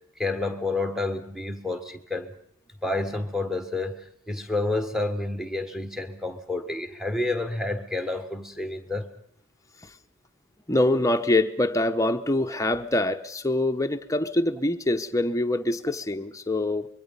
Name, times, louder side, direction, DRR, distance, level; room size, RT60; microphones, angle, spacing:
voice 1, 0.2-2.3 2.8-9.1, left 2 dB, ahead, 1.6 m, -29 dB
voice 2, 10.7-16.9, left 1 dB, 15° left, 0.9 m, -24 dB
25.5 x 22.5 x 5.4 m
head